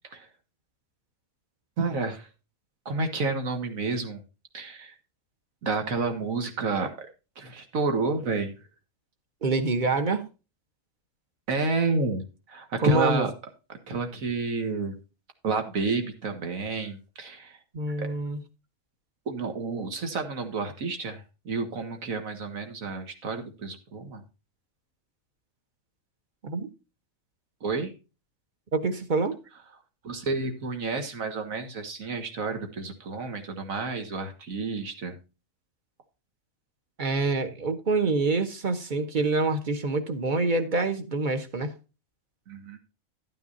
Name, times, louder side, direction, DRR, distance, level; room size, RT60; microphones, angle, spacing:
voice 1, 1.8-2.3 2.9-4.2 4.5-5.0 5.6-7.1 7.4-8.6 11.5-13.3 13.9-15.0 15.4-17.6 18.0-18.1 19.3-24.2 27.6-27.9 30.0-35.2 42.5-42.8, right 3 dB, 75° right, 1.9 m, -30 dB
voice 2, 9.4-10.2 12.8-13.2 17.7-18.4 26.4-26.7 28.7-29.4 37.0-41.7, right 3 dB, 35° right, 1.2 m, -26 dB
12.0 x 9.3 x 2.7 m
omnidirectional pair, 1.4 m